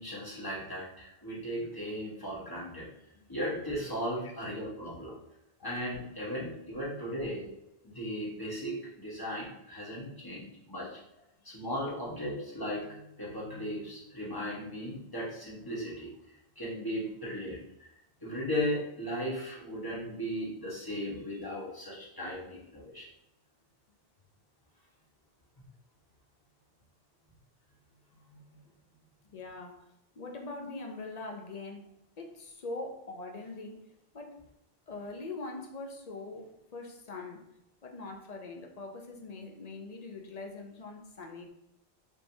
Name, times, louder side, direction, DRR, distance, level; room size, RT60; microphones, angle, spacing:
voice 1, 0.0-2.9 3.3-5.2 5.6-7.5 7.8-11.0 11.4-16.1 16.5-17.6 18.2-23.1 28.3-28.4, equal, 20° left, 1.4 m, -36 dB
voice 2, 29.3-29.9 30.2-34.4 34.9-37.5 37.8-41.5, left 3 dB, 45° left, 0.7 m, -42 dB
5.2 x 3.5 x 2.7 m
omnidirectional pair, 1.1 m